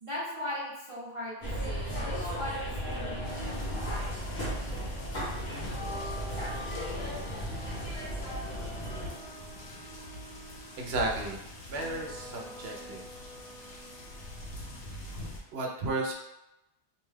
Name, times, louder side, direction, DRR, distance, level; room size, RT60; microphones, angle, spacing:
voice 1, 0.0-3.6, left 1 dB, 35° right, -8 dB, 0.7 m, -39 dB
sound 1, 1.4-9.1, equal, 65° left, 1.1 m, -35 dB
sound 2, 2.6-15.5, equal, 35° left, 0.9 m, -47 dB
sound 3, 3.2-15.4, left 1 dB, 85° left, 1.0 m, -44 dB
voice 2, 10.8-11.4 11.7-13.1 15.5-16.1, right 2 dB, 70° right, 0 dB, 0.8 m, -33 dB
2.7 x 2.2 x 3.2 m, 0.91 s
omnidirectional pair, 1.1 m